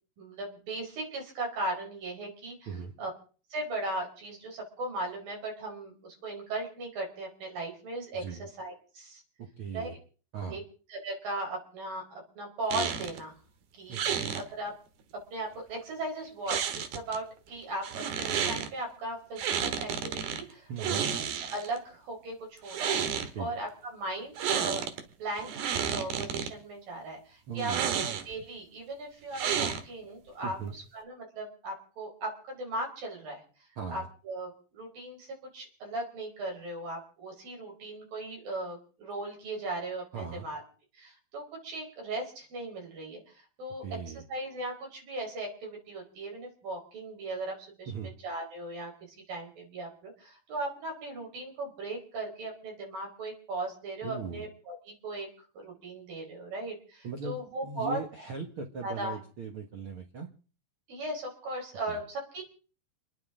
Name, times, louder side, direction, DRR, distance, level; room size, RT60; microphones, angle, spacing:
voice 1, 0.2-3.1 3.5-9.2 9.7-10.0 10.5-10.6 10.9-13.3 13.7-14.7 15.3-16.6 16.9-24.3 24.6-24.9 25.2-33.4 33.9-40.6 40.9-43.8 44.1-47.9 48.2-55.3 55.5-58.0 58.8-59.2 60.9-62.4, right 2 dB, 70° right, 1 dB, 6.3 m, -38 dB
voice 2, 8.1-8.5 9.6-9.9 10.3-10.6 13.9-14.4 20.7-21.1 23.3-23.5 27.5-28.0 30.4-30.8 33.8-34.1 40.1-40.5 43.8-44.2 47.9-48.1 54.0-54.4 57.0-60.3 61.9-62.0, right 5 dB, 50° right, 4 dB, 1.8 m, -39 dB
sound 1, 12.7-13.2 13.9-14.4 16.5-17.2 17.8-18.7 19.4-20.4 20.8-21.8 22.6-23.3 24.4-25.0 25.4-26.5 27.6-28.4 29.3-30.1, right 8 dB, 85° right, 3.4 m, -31 dB
29.5 x 10.5 x 3.7 m, 0.40 s
omnidirectional pair, 4.2 m